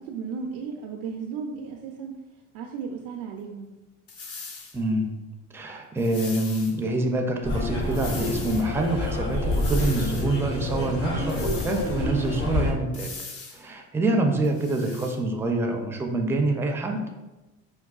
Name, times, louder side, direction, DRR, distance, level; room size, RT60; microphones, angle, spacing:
voice 1, 0.0-2.2 2.5-3.7, right 5 dB, 75° right, 1 dB, 0.5 m, -35 dB
sound 1, 4.1-4.8 6.0-6.7 7.9-8.7 9.5-10.3 11.3-12.0 12.9-13.6 14.4-15.1, left 4 dB, 40° left, 0.7 m, -40 dB
voice 2, 4.7-5.2 5.5-13.1 13.5-17.0, right 2 dB, 5° right, 2 dB, 0.4 m, -26 dB
sound 2, 7.4-12.7, left 2 dB, 65° left, 1.4 m, -28 dB
4.5 x 2.2 x 2.3 m, 1.1 s
supercardioid pair, 90°, 35 cm